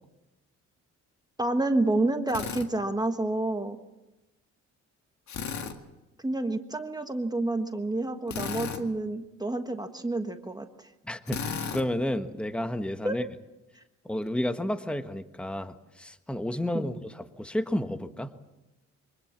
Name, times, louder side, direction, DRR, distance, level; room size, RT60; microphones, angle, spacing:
voice 1, 1.4-3.8 6.2-10.9 13.0-13.1 16.7-16.9, right 2 dB, 15° right, 6 dB, 1.4 m, -29 dB
Drill, 2.3-2.7 5.3-5.8 8.3-8.8 11.3-11.8, left 6 dB, 65° left, 2.1 m, -34 dB
voice 2, 11.0-13.2 14.0-18.3, left 1 dB, 5° left, 9 dB, 1.3 m, -31 dB
24.5 x 19.5 x 7.3 m, 1.0 s
cardioid pair, 90°, 30 cm